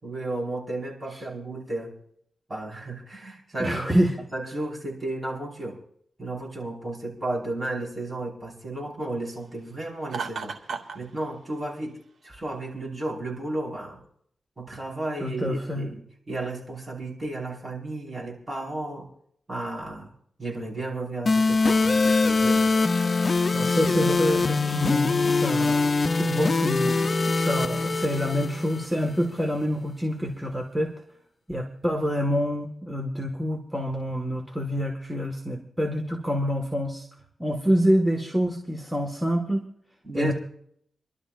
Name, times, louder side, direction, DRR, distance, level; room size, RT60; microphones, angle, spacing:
voice 1, 0.0-1.9 2.5-3.8 4.3-5.8 6.2-10.6 10.9-12.0 12.2-14.0 14.6-16.0 16.3-19.1 19.5-20.1 20.4-22.7 40.0-40.3, right 2 dB, 25° right, -3 dB, 4.9 m, -33 dB
voice 2, 3.6-4.2 15.2-15.9 23.5-25.8 26.1-30.9 31.5-37.1 37.4-39.6 40.1-40.3, equal, 5° right, 2 dB, 1.7 m, -26 dB
Laughter, 10.1-11.0, right 5 dB, 85° right, 1.5 m, -33 dB
sound 1, 21.3-29.2, left 3 dB, 40° left, 0.6 m, -23 dB
28.5 x 12.0 x 2.6 m, 0.67 s
wide cardioid pair, 90°, 0 cm